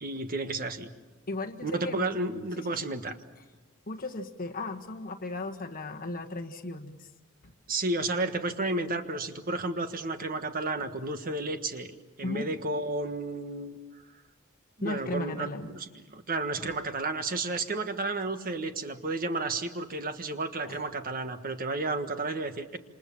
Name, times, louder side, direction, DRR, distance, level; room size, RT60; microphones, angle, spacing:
voice 1, 0.0-0.9 1.6-3.1 7.7-11.9 12.2-13.8 14.8-22.8, right 2 dB, 45° right, 8 dB, 1.5 m, -32 dB
voice 2, 1.3-2.1 2.6-2.8 3.9-7.1 10.8-10.9 12.2-12.5 14.8-15.7 16.6-16.7 20.6-20.8, left 2 dB, 40° left, 5 dB, 1.5 m, -36 dB
28.0 x 27.0 x 7.2 m, 1.2 s
head